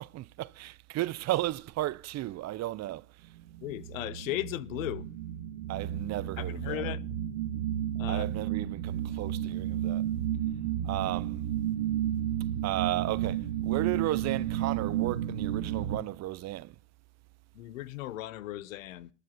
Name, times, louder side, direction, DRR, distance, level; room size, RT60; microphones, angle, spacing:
voice 1, 0.0-3.0 5.7-6.8 8.1-10.0 10.8-11.4 12.6-16.7, right 16 dB, 45° right, 0.5 m, -34 dB
sound 1, 3.5-16.0, right 11 dB, 80° right, 1.1 m, -32 dB
voice 2, 3.6-5.0 6.4-7.2 8.0-8.3 17.5-19.1, left 15 dB, 90° left, 0.9 m, -36 dB
13.0 x 5.0 x 8.2 m
supercardioid pair, 85°, 39 cm